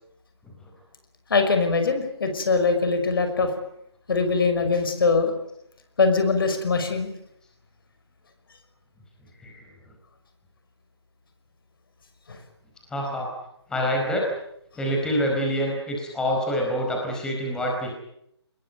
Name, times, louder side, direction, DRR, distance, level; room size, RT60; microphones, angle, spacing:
voice 1, 1.3-3.5 4.1-5.3 6.0-7.1 12.3-12.4, left 4 dB, 55° left, 7 dB, 5.7 m, -22 dB
voice 2, 12.9-13.3 13.7-14.3 14.8-17.9, equal, 5° left, -1 dB, 4.6 m, -26 dB
24.5 x 21.0 x 9.2 m, 0.77 s
figure-of-eight pair, 155°, 14 cm